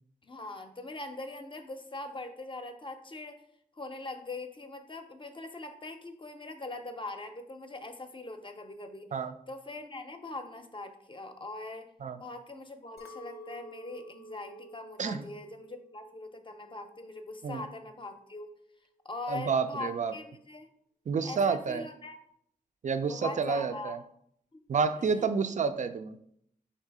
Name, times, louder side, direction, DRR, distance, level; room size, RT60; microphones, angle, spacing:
voice 1, 0.2-3.4 3.8-9.1 9.5-11.9 12.2-18.5 19.0-20.7 21.2-22.2 23.1-24.0 24.5-24.6, left 2 dB, 30° left, 7 dB, 0.6 m, -42 dB
Chink clink, 13.0-17.4 17.7-18.3, left 1 dB, 90° left, 0.5 m, -51 dB
voice 2, 19.3-20.1 21.1-21.9 22.8-24.0 24.7-26.2, right 5 dB, 50° right, 10 dB, 0.4 m, -29 dB
3.8 x 2.8 x 4.7 m, 0.68 s
cardioid pair, 60°, 16 cm